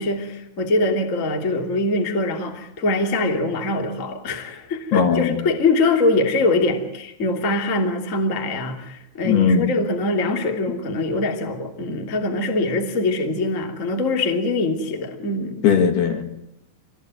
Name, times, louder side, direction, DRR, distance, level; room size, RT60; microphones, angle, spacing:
voice 1, 0.0-15.7, left 2 dB, 20° left, 3 dB, 2.1 m, -23 dB
voice 2, 4.9-5.3 9.3-9.7 15.6-16.2, left 7 dB, 60° left, 6 dB, 3.7 m, -18 dB
27.5 x 20.5 x 9.4 m, 0.81 s
omnidirectional pair, 5.5 m